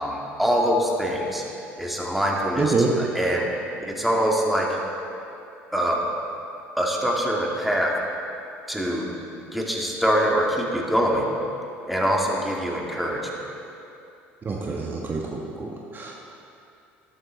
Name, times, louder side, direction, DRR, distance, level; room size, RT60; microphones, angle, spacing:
voice 1, 0.0-1.4 1.8-3.5 3.9-4.8 5.7-6.1 6.8-7.9 8.7-9.1 9.5-11.3 11.9-13.5, equal, ahead, -2 dB, 2.3 m, -24 dB
voice 2, 2.6-2.9 14.4-16.2, right 4 dB, 35° right, -1 dB, 1.3 m, -27 dB
13.0 x 11.5 x 4.0 m, 2.7 s
hypercardioid pair, 70°, 6 cm